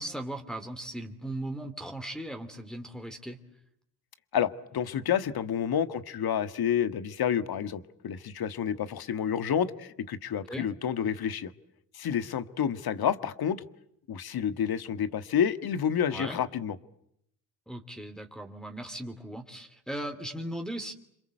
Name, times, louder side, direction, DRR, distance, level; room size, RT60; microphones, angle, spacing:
voice 1, 0.0-3.4 10.5-10.7 16.1-16.4 17.7-20.9, right 1 dB, ahead, 4 dB, 3.1 m, -38 dB
voice 2, 4.3-11.5 11.9-13.6 14.1-16.8, left 8 dB, 50° left, 12 dB, 1.7 m, -29 dB
28.0 x 26.5 x 7.9 m, 0.76 s
hypercardioid pair, 55°, 48 cm